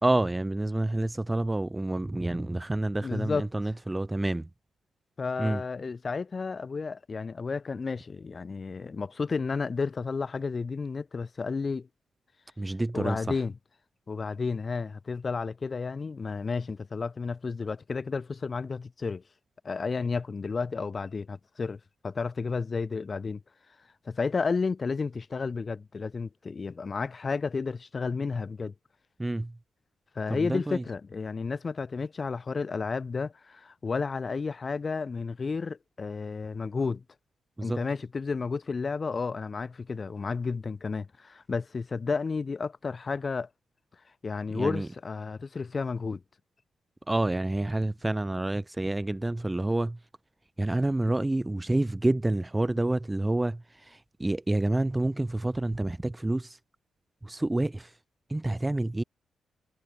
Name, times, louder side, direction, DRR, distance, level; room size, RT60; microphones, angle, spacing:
voice 1, 0.0-4.5 5.4-5.6 12.6-13.2 29.2-29.5 30.3-30.8 37.6-37.9 44.5-44.9 47.1-50.0 50.6-56.6 57.2-57.9 58.3-59.0, right 2 dB, 15° right, 0.3 m, -28 dB
voice 2, 3.0-3.5 5.2-11.9 12.9-13.6 14.1-19.2 19.6-23.4 24.0-28.7 30.1-37.0 37.6-43.5 44.2-46.2, left 4 dB, 35° left, 1.2 m, -32 dB
cardioid pair, 95°, 0 cm